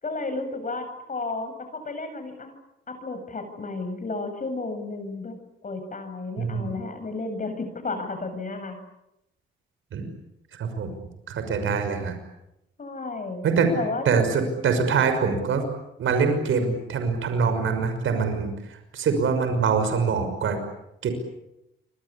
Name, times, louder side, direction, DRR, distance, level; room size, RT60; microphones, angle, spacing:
voice 1, 0.0-2.6 2.9-5.3 5.6-8.8 12.8-13.4 13.7-14.0, left 3 dB, 40° left, 8 dB, 7.9 m, -32 dB
voice 2, 6.4-6.8 9.9-10.1 10.5-10.9 11.3-12.2 13.4-13.7 14.0-15.6 16.0-20.6 21.0-21.1, right 5 dB, 70° right, 7 dB, 6.0 m, -24 dB
28.5 x 23.5 x 8.6 m, 0.86 s
cardioid pair, 75°, 21 cm